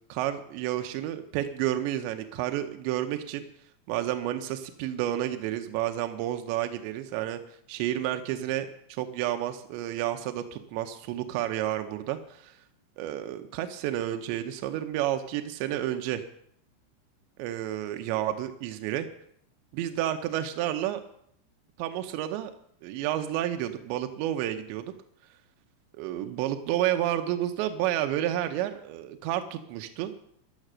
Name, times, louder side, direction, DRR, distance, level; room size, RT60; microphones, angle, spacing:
voice 1, 0.1-3.4 3.9-7.4 7.7-12.6 13.0-16.2 17.4-19.1 19.7-21.0 21.8-22.5 22.8-24.9 26.0-30.1, right 12 dB, 80° right, 7 dB, 3.1 m, -30 dB
13.0 x 11.5 x 6.2 m, 0.69 s
omnidirectional pair, 5.2 m